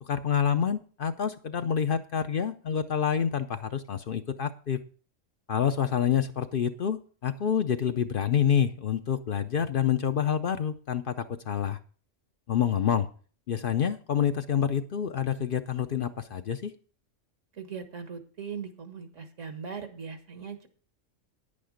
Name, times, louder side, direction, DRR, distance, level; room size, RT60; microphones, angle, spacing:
voice 1, 0.0-4.8 5.5-11.8 12.5-13.1 13.5-16.7, left 8 dB, 55° left, 9 dB, 0.7 m, -27 dB
voice 2, 17.5-20.7, right 6 dB, 75° right, 7 dB, 1.8 m, -39 dB
10.0 x 8.6 x 5.0 m, 0.41 s
omnidirectional pair, 1.3 m